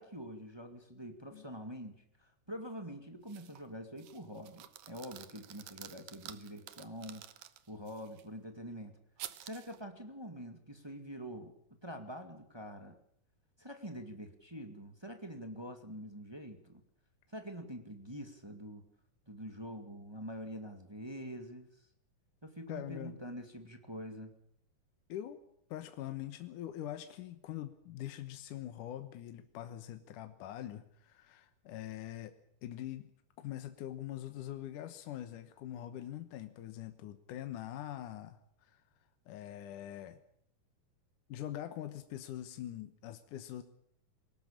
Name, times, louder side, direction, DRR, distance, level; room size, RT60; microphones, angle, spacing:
voice 1, 0.0-7.2 7.7-9.0 9.4-11.5 11.8-12.9 13.6-16.8 17.3-18.8 19.3-21.7 22.4-24.3, equal, 10° right, 6 dB, 1.5 m, -45 dB
sound 1, 3.3-3.7 4.0-8.2 9.2-9.8, right 12 dB, 80° right, 2.6 m, -50 dB
voice 2, 22.7-23.2 25.1-25.4 25.7-32.4 32.6-33.1 33.4-38.8 39.3-40.2 41.3-43.6, left 12 dB, 75° left, 9 dB, 2.6 m, -43 dB
22.5 x 18.5 x 8.7 m, 0.68 s
omnidirectional pair, 3.8 m